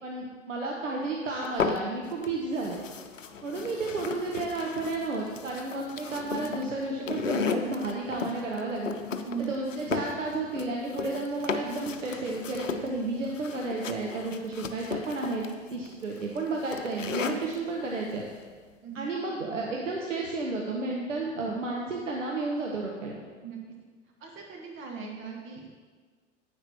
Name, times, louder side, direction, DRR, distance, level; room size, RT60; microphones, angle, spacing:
voice 1, 0.0-2.8 3.4-9.0 9.4-15.4 15.7-18.3 18.9-23.2, right 3 dB, 80° right, -1 dB, 1.0 m, -32 dB
sound 1, 1.4-2.3 2.6-17.6, left 6 dB, 80° left, 0.7 m, -35 dB
voice 2, 18.8-19.1 23.4-23.6 24.2-25.7, right 6 dB, 30° right, 0 dB, 1.2 m, -39 dB
9.7 x 8.7 x 2.9 m, 1.5 s
figure-of-eight pair, 90°, 37 cm